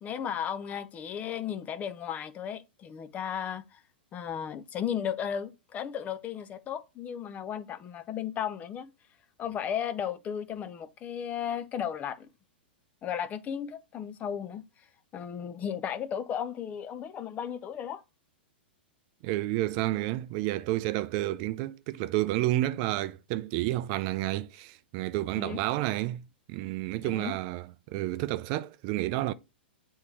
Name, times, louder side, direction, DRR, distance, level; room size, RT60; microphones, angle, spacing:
voice 1, 0.0-3.8 4.1-8.9 9.4-12.3 13.0-14.6 15.1-18.0 25.4-25.6 27.0-27.3, left 8 dB, 30° left, 0.7 m, -35 dB
voice 2, 19.2-29.3, right 16 dB, 45° right, 0.4 m, -30 dB
8.1 x 3.6 x 3.2 m
hypercardioid pair, 115°, 6 cm